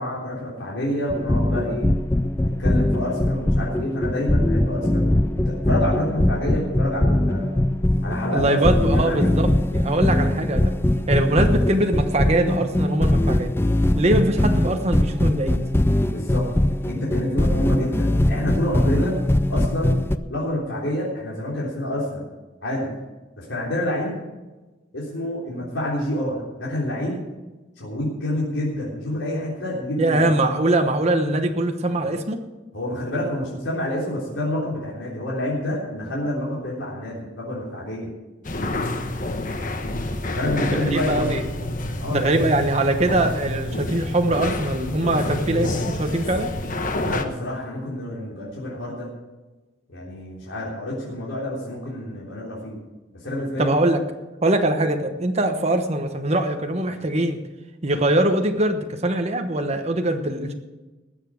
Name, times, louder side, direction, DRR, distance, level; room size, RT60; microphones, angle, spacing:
voice 1, 0.0-1.9 2.6-5.1 5.5-7.6 8.0-9.3 16.1-16.4 16.9-19.1 19.5-20.0 20.3-22.2 22.6-22.9 23.4-24.2 24.9-27.2 27.8-30.2 32.7-38.1 40.3-41.5 42.0-42.5 47.0-49.1 49.9-52.8 53.2-53.7, left 1 dB, 90° left, -6 dB, 3.7 m, -28 dB
sound 1, 1.1-20.2, left 1 dB, 15° left, 0.4 m, -21 dB
voice 2, 8.3-10.7 11.1-13.5 13.9-15.6 30.0-32.4 40.6-41.5 42.1-46.5 53.6-54.0 54.4-57.4 57.8-60.5, right 1 dB, 35° right, 4 dB, 1.1 m, -22 dB
sound 2, 38.4-47.2, left 1 dB, 45° left, 1.1 m, -28 dB
20.0 x 7.1 x 6.4 m, 1.2 s
head